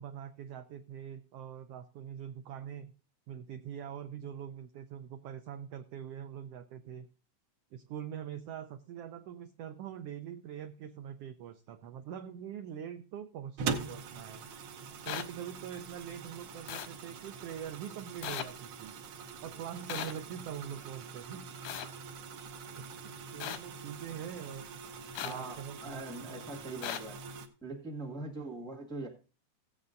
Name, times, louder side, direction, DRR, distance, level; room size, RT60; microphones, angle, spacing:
voice 1, 0.0-2.9 3.3-7.1 7.7-14.4 15.0-18.9 19.4-21.5 22.8-24.7 25.2-26.3, right 9 dB, 85° right, 8 dB, 1.3 m, -43 dB
sound 1, 13.6-27.5, right 5 dB, 65° right, 1.3 m, -43 dB
sound 2, 15.1-15.2 16.7-16.9 18.2-18.4 19.9-20.1 21.6-21.9 23.4-23.6 25.2-25.3 26.8-27.0, left 11 dB, 90° left, 2.2 m, -37 dB
voice 2, 25.2-27.2 27.6-29.1, right 2 dB, 5° left, -1 dB, 0.5 m, -42 dB
16.5 x 8.2 x 2.5 m, 0.34 s
omnidirectional pair, 3.4 m